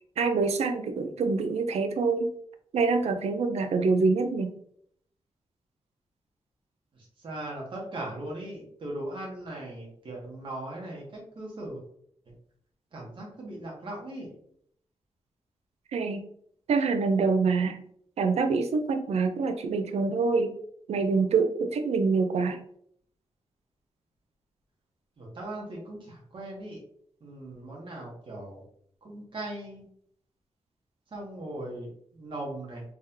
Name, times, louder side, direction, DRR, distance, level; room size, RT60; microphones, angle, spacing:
voice 1, 0.2-2.3 2.7-4.5 15.9-16.2 16.7-17.8 18.2-20.5 20.9-22.6, right 4 dB, 85° right, 7 dB, 0.5 m, -25 dB
voice 2, 6.9-11.8 12.2-12.3 12.9-14.3 25.2-26.8 27.2-28.6 29.0-29.8 31.1-32.8, right 1 dB, 50° right, -3 dB, 1.1 m, -39 dB
3.6 x 3.2 x 2.8 m, 0.65 s
wide cardioid pair, 140°, 11 cm